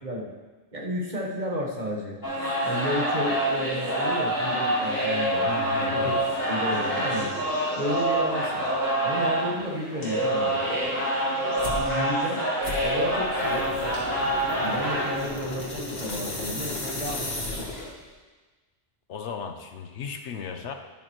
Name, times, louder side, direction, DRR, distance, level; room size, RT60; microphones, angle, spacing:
voice 1, 0.0-0.4 0.7-2.2 2.6-5.5 5.9-6.1 6.5-7.3 7.7-8.6 9.0-10.7 11.7-12.4 12.8-13.7 14.6-17.3, equal, 40° right, -1 dB, 1.5 m, -32 dB
sound 1, 2.2-15.3, right 1 dB, 15° left, 3.6 m, -26 dB
voice 2, 5.5-6.2 19.1-20.7, left 6 dB, 75° left, 6 dB, 1.1 m, -36 dB
sound 2, 11.6-11.9 12.6-18.1, left 2 dB, 60° left, 1.9 m, -34 dB
11.0 x 10.5 x 3.1 m, 1.3 s
omnidirectional pair, 1.2 m